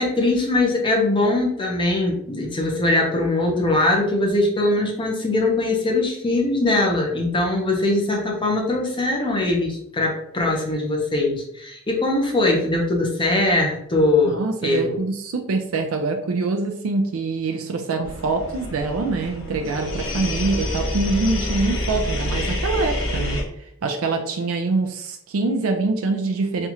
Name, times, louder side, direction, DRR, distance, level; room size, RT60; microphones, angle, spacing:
voice 1, 0.0-15.0, left 2 dB, 25° left, 0 dB, 0.7 m, -21 dB
voice 2, 14.2-23.4 23.8-26.7, right 3 dB, 85° right, 3 dB, 0.4 m, -24 dB
sound 1, 18.0-23.4, left 1 dB, 75° left, 1.3 m, -27 dB
4.3 x 2.4 x 2.8 m, 0.71 s
head